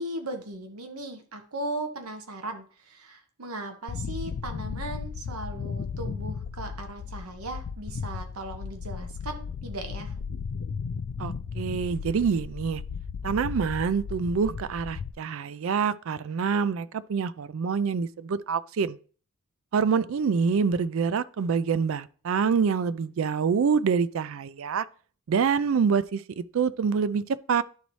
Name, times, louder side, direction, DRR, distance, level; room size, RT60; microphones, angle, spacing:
voice 1, 0.0-10.1, right 2 dB, 85° right, 1.1 m, -37 dB
sound 1, 3.9-15.1, left 5 dB, 55° left, 0.3 m, -35 dB
voice 2, 11.2-12.8 13.2-19.0 19.7-24.9 25.3-27.6, right 6 dB, 65° right, 0.4 m, -26 dB
11.0 x 4.0 x 3.1 m
head